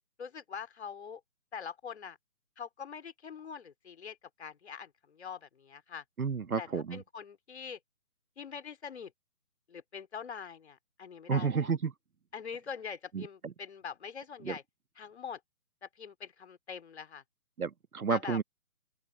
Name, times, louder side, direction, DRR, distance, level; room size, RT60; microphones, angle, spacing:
voice 1, 0.2-1.2 1.5-2.2 2.6-6.0 6.6-7.8 8.4-9.1 9.7-11.7 12.3-14.6 15.0-15.4 15.8-17.2 18.1-18.4, left 6 dB, 45° left, 3.1 m, -43 dB
voice 2, 6.2-7.0 11.3-11.9 13.1-13.5 14.4-14.5 17.6-18.4, right 5 dB, 65° right, 1.5 m, -31 dB
open air
figure-of-eight pair, 145°, 46 cm